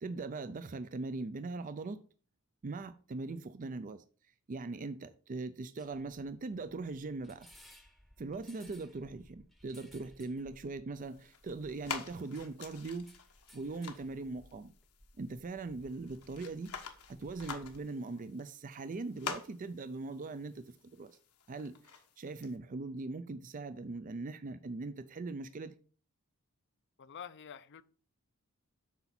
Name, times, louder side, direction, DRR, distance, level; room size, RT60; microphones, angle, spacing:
voice 1, 0.0-2.0 2.6-4.0 4.5-7.5 8.2-13.1 13.5-14.7 15.2-21.1 21.5-25.7, right 3 dB, 35° right, 0.4 m, -41 dB
sound 1, 5.8-17.9, equal, ahead, 0.8 m, -61 dB
sound 2, 11.0-22.6, left 6 dB, 85° left, 1.3 m, -48 dB
voice 2, 27.0-27.8, left 7 dB, 55° left, 0.5 m, -47 dB
8.2 x 5.7 x 4.3 m
head